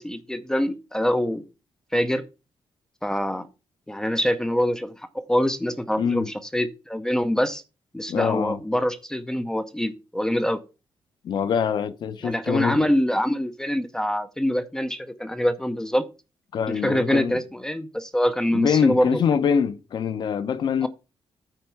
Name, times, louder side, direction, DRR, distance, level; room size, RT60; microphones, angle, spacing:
voice 1, 0.0-1.4 1.9-2.2 3.0-3.5 3.9-5.0 5.3-7.6 7.9-10.6 12.2-16.1 16.7-19.2 20.8-20.9, equal, 5° left, 0.6 m, -25 dB
voice 2, 6.0-6.3 8.1-8.6 11.2-12.9 16.5-17.4 18.5-20.9, left 7 dB, 60° left, 0.7 m, -24 dB
9.1 x 4.4 x 6.9 m
wide cardioid pair, 170°, 9 cm